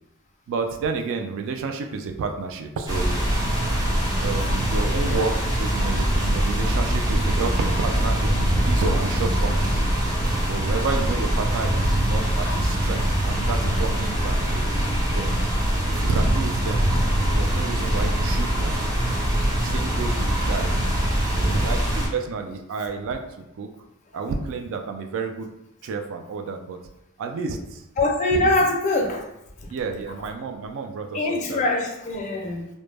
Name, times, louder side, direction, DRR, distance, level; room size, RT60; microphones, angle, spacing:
voice 1, 0.5-3.2 4.2-5.3 5.6-9.8 10.4-14.7 15.0-15.6 15.9-17.0 17.3-18.9 19.6-20.7 21.3-23.7 24.1-25.5 25.8-26.8 27.2-27.8 28.4-28.5 29.7-31.6, right 4 dB, 60° right, 6 dB, 0.3 m, -30 dB
sound 1, 2.9-22.1, equal, 15° right, 0.6 m, -23 dB
voice 2, 21.3-21.7 28.0-29.2 31.1-32.7, left 2 dB, 35° left, 1 dB, 0.4 m, -23 dB
2.0 x 2.0 x 3.2 m, 0.83 s
head